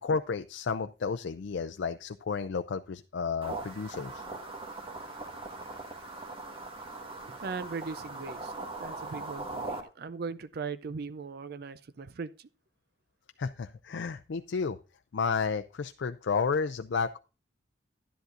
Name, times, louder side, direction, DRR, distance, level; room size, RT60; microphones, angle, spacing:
voice 1, 0.0-4.2 13.4-14.8 15.1-17.2, left 5 dB, 70° left, 0.4 m, -32 dB
sound 1, 3.4-9.8, right 2 dB, 30° right, 1.5 m, -40 dB
voice 2, 7.4-8.5 8.8-12.5, right 4 dB, 55° right, 0.5 m, -39 dB
11.0 x 10.5 x 2.5 m
head